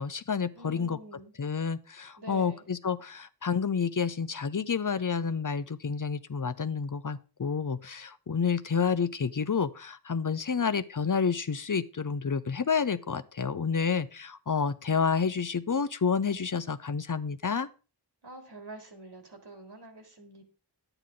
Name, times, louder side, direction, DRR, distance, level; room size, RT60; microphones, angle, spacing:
voice 1, 0.0-1.0 1.4-17.7, left 6 dB, 50° left, 13 dB, 0.7 m, -29 dB
voice 2, 0.5-1.3 2.2-2.6 18.2-20.4, right 2 dB, 75° right, 2 dB, 3.2 m, -46 dB
11.0 x 9.0 x 3.8 m, 0.34 s
wide cardioid pair, 50°, 41 cm